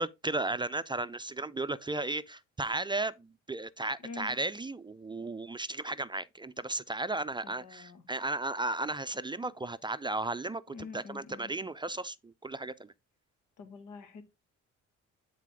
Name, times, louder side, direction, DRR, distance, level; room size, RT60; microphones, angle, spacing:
voice 1, 0.0-12.9, right 2 dB, 15° right, 0.4 m, -35 dB
voice 2, 4.0-4.4 7.4-8.0 10.7-11.5 13.6-14.2, left 4 dB, 90° left, 1.9 m, -46 dB
9.3 x 4.1 x 3.5 m
cardioid pair, 90°, 30 cm